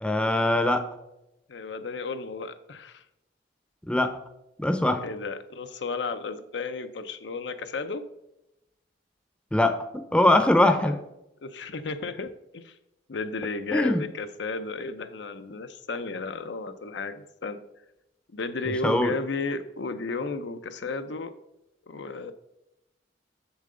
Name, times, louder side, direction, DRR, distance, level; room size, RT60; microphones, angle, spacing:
voice 1, 0.0-0.8 3.9-4.1 4.6-5.0 9.5-9.7 10.1-10.9 13.7-14.0 18.8-19.1, left 1 dB, 5° left, 7 dB, 0.6 m, -21 dB
voice 2, 1.5-3.0 5.0-8.0 10.6-11.0 11.4-12.8 13.1-17.6 18.3-21.3 21.9-22.3, left 3 dB, 80° left, 9 dB, 0.6 m, -33 dB
7.6 x 7.0 x 3.8 m, 0.88 s
head